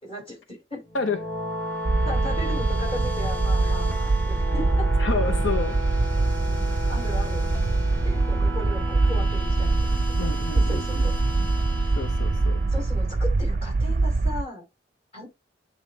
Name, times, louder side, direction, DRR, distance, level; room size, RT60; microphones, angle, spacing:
voice 1, 0.0-0.8 2.0-4.9 6.9-7.4 8.0-11.2 12.7-14.6 15.1-15.3, left 1 dB, 30° left, 4.2 m, -37 dB
voice 2, 0.9-1.3 5.0-5.8 10.2-11.1 12.0-12.6, left 4 dB, 90° left, 0.8 m, -29 dB
sound 1, 0.9-13.2, equal, 10° left, 1.0 m, -34 dB
sound 2, 1.8-14.4, right 3 dB, 45° right, 0.5 m, -24 dB
8.4 x 3.2 x 3.4 m
head